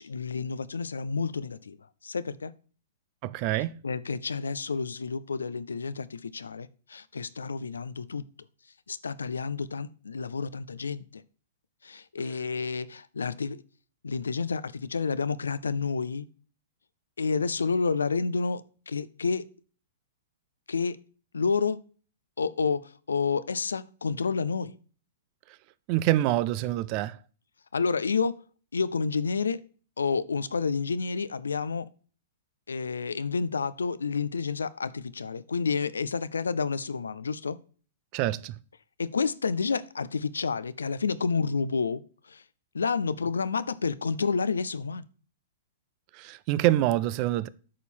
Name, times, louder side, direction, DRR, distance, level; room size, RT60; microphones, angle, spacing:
voice 1, 0.0-2.5 3.8-8.3 8.9-11.2 11.8-13.6 14.0-16.3 17.2-19.5 20.7-21.0 21.3-21.8 22.4-24.8 27.7-28.4 28.7-29.6 30.0-31.9 32.7-37.6 39.0-42.4 42.7-45.1, left 5 dB, 85° left, 0.5 m, -30 dB
voice 2, 3.2-3.8 25.9-27.2 38.1-38.6 46.1-47.5, right 15 dB, 40° right, 0.5 m, -26 dB
8.5 x 5.4 x 4.5 m
hypercardioid pair, 120°, 0 cm